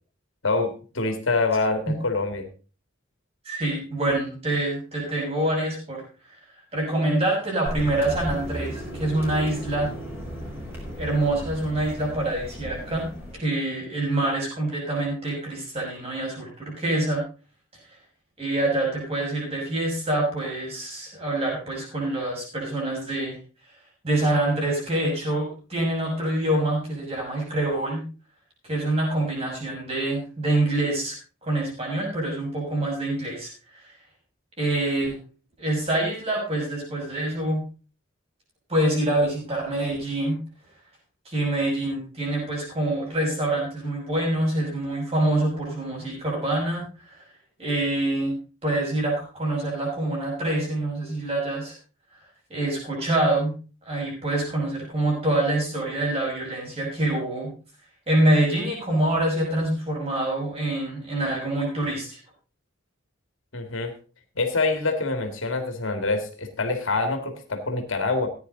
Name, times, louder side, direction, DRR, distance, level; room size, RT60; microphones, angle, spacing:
voice 1, 0.4-2.5 63.5-63.9 64.4-68.3, left 3 dB, 75° left, 6 dB, 2.1 m, -25 dB
voice 2, 3.4-6.0 6.7-9.9 11.0-17.2 18.4-23.4 24.0-28.0 28.6-31.1 31.4-33.8 34.6-35.2 35.6-37.6 38.7-40.4 41.2-47.2 47.6-48.4 48.6-51.7 52.5-53.5 53.9-57.5 58.1-62.2, right 1 dB, 30° right, -2 dB, 6.4 m, -26 dB
sound 1, 7.6-13.3, equal, 10° right, 4.7 m, -35 dB
15.0 x 9.7 x 4.0 m, 0.35 s
head